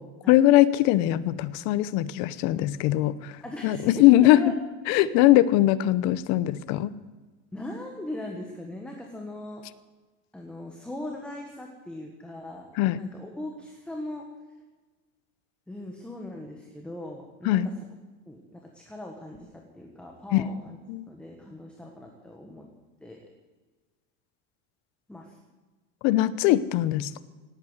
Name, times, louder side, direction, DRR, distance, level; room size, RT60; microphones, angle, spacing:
voice 1, 0.3-3.4 3.6-4.4 4.9-6.9 12.8-13.0 17.4-17.7 20.3-20.5 20.9-21.1 26.0-27.2, left 15 dB, 50° left, 16 dB, 0.8 m, -21 dB
voice 2, 3.4-4.5 5.0-5.2 7.5-9.6 10.3-12.7 13.0-14.2 15.7-17.7 18.3-20.8 21.1-22.7 23.0-23.3 25.1-25.4, left 1 dB, 5° left, 1 dB, 1.3 m, -39 dB
18.0 x 8.7 x 8.1 m, 1.3 s
cardioid pair, 165°, 35 cm